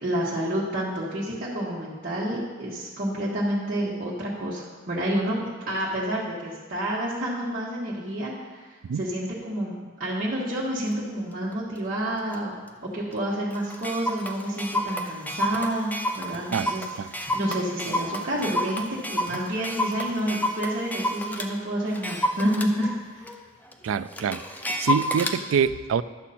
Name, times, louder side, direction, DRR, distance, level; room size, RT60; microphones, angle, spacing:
voice 1, 0.0-12.5 12.8-23.2, right 1 dB, 45° right, -7 dB, 1.5 m, -29 dB
Clock, 10.9-11.0 11.5-11.8 12.3-12.4 12.7-12.8 13.1-13.2 13.5-21.5 21.9-25.4, equal, 10° left, 0.6 m, -30 dB
voice 2, 23.8-24.4 24.7-26.0, right 7 dB, 85° right, 14 dB, 0.4 m, -25 dB
11.5 x 7.2 x 4.3 m, 1.4 s
head